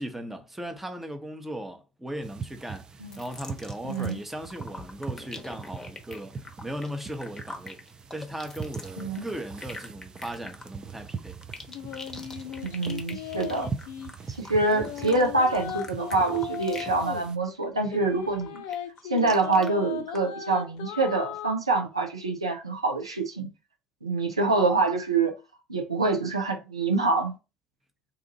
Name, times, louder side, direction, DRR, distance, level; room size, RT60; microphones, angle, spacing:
voice 1, 0.0-6.4 6.6-7.8 8.1-11.4, right 1 dB, 10° right, 0.8 m, -37 dB
sound 1, 2.2-17.4, right 5 dB, 30° right, 0.4 m, -41 dB
sound 2, 3.1-4.2 4.4-17.0 17.3-17.6 18.0-19.7 20.1-20.2, left 2 dB, 20° left, 0.9 m, -43 dB
voice 2, 3.8-4.2 9.0-9.3 12.6-13.7 14.4-18.6 19.1-23.5 24.0-25.3 25.7-27.4, right 3 dB, 85° right, 0.6 m, -26 dB
sound 3, 11.7-14.1 14.5-17.3 17.9-21.5, left 10 dB, 60° left, 0.4 m, -37 dB
2.7 x 2.5 x 3.9 m
figure-of-eight pair, 60°, 3 cm